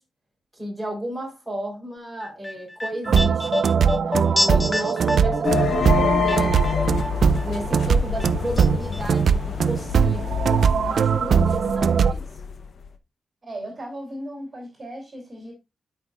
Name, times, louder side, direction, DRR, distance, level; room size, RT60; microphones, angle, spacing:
voice 1, 0.5-3.7 4.0-6.7 7.4-12.3, equal, ahead, 3.7 m, -34 dB
sound 1, 2.2-7.4 7.7-8.7 8.9-9.0, left 1 dB, 15° left, 0.4 m, -28 dB
sound 2, 3.1-12.1, right 6 dB, 65° right, 0.3 m, -20 dB
sound 3, 5.4-12.9, left 7 dB, 65° left, 0.8 m, -27 dB
voice 2, 13.4-15.5, right 1 dB, 35° right, 3.0 m, -36 dB
13.0 x 5.2 x 2.4 m
wide cardioid pair, 140°, 0 cm